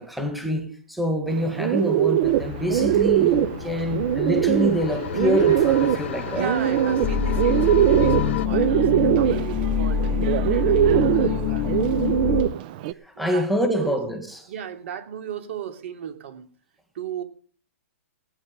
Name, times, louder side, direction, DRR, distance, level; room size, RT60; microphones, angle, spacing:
voice 1, 0.0-6.6 13.0-14.5, equal, ahead, 1.9 m, -26 dB
Bird, 1.3-12.9, right 12 dB, 40° right, 0.6 m, -22 dB
sound 1, 2.2-8.5, left 10 dB, 55° left, 0.9 m, -33 dB
voice 2, 6.2-12.4 13.1-13.9 14.5-16.5 16.9-17.2, right 9 dB, 60° right, 2.9 m, -35 dB
sound 2, 7.0-12.4, left 7 dB, 25° left, 0.7 m, -25 dB
17.5 x 9.8 x 5.3 m
hypercardioid pair, 160°, 8 cm